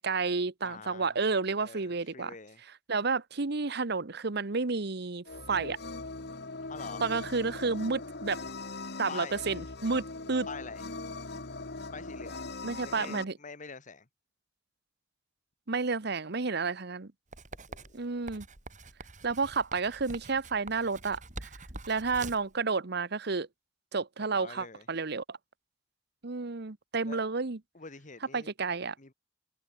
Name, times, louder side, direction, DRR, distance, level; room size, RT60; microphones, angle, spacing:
voice 1, 0.0-2.3 2.9-5.8 7.0-8.4 9.0-10.5 12.6-13.3 15.7-17.1 17.9-18.5 19.2-21.5 21.9-23.5 23.9-25.4 26.2-27.6 28.3-28.9, right 4 dB, 60° right, 1.1 m, -31 dB
voice 2, 0.6-1.2 1.6-2.6 6.7-7.1 9.1-9.4 10.5-10.8 11.9-12.5 12.8-14.1 17.7-18.0 24.2-24.9 27.0-27.3 27.7-28.5 29.0-29.1, left 4 dB, 45° left, 1.8 m, -45 dB
sound 1, 5.3-13.2, left 3 dB, 60° left, 2.0 m, -40 dB
Writing, 17.3-22.5, right 3 dB, 45° right, 5.1 m, -45 dB
head